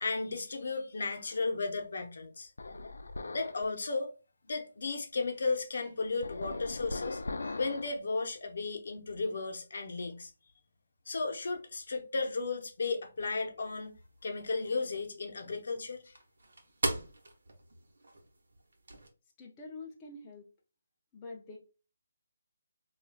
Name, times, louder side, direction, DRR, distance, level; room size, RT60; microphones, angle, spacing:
voice 1, 0.0-2.5 3.3-4.1 4.4-10.3 11.1-13.9 14.2-16.1, left 3 dB, 60° left, 0.7 m, -34 dB
sound 1, 2.6-3.6 6.2-8.0, left 3 dB, 90° left, 0.3 m, -39 dB
sound 2, 13.8-19.1, right 2 dB, 70° right, 0.8 m, -41 dB
voice 2, 19.4-20.5 21.1-21.6, left 3 dB, 15° left, 0.4 m, -46 dB
4.6 x 2.3 x 2.2 m
hypercardioid pair, 170°, 0 cm